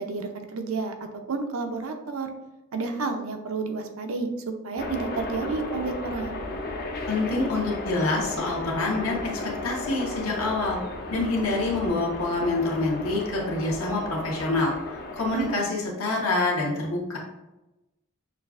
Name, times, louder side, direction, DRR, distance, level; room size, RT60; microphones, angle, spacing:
voice 1, 0.0-2.3 2.7-6.4 15.3-15.5, right 4 dB, 75° right, 5 dB, 0.5 m, -31 dB
sound 1, 4.8-15.6, left 2 dB, 45° left, 0.5 m, -34 dB
voice 2, 7.1-10.8 11.1-17.2, left 2 dB, 75° left, -2 dB, 1.0 m, -27 dB
6.3 x 2.4 x 2.4 m, 0.99 s
head